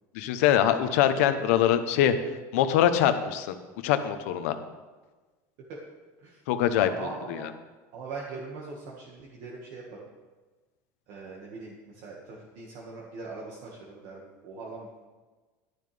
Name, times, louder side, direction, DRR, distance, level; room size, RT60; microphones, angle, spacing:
voice 1, 0.1-2.1 2.5-3.6 3.8-4.6 6.5-6.9 7.3-7.5, left 10 dB, 80° left, 10 dB, 0.9 m, -23 dB
voice 2, 6.7-7.4 7.9-10.1 11.1-14.9, right 3 dB, 55° right, -3 dB, 1.7 m, -41 dB
12.0 x 10.5 x 3.4 m, 1.3 s
cardioid pair, 165°, 8 cm